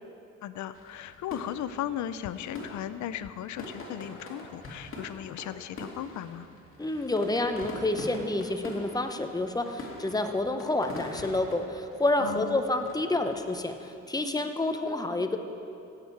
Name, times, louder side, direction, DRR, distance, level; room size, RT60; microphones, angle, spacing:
voice 1, 0.4-6.5 12.2-12.6, left 11 dB, 70° left, 14 dB, 0.5 m, -36 dB
sound 1, 0.7-13.6, left 2 dB, 45° left, 2.4 m, -44 dB
voice 2, 6.8-15.4, left 2 dB, 15° left, 7 dB, 0.8 m, -29 dB
16.5 x 7.3 x 4.7 m, 2.7 s
cardioid pair, 90°, 30 cm